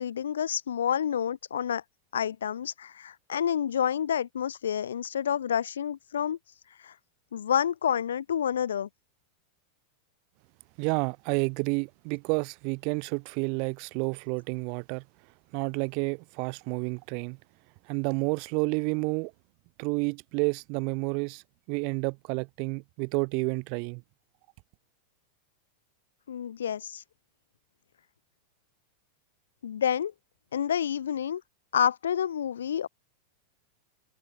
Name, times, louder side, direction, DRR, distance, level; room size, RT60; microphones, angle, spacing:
voice 1, 0.0-1.8 2.1-6.4 6.8-6.9 7.3-8.9 26.3-27.0 29.6-30.1 30.5-31.4 31.7-32.9, left 9 dB, 65° left, 6.1 m, -29 dB
voice 2, 10.8-15.0 15.5-17.4 17.9-19.3 19.8-21.4 21.7-24.0, right 36 dB, 45° right, 4.7 m, -30 dB
figure-of-eight pair, 90°, 0 cm